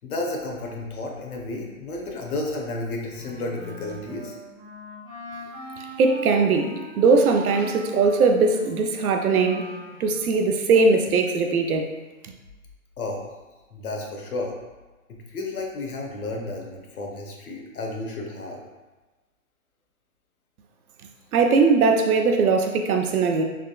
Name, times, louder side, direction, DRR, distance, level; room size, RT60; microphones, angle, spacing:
voice 1, 0.0-4.4 13.0-13.2 13.7-14.5 15.1-18.6, left 2 dB, 85° left, 0 dB, 0.8 m, -32 dB
Wind instrument woodwind instrument, 3.1-10.4, equal, 20° right, 1.0 m, -41 dB
voice 2, 6.0-9.7 10.0-11.9 21.3-23.4, right 4 dB, 85° right, 4 dB, 0.5 m, -20 dB
3.4 x 2.3 x 2.2 m, 1.2 s
hypercardioid pair, 175°, 43 cm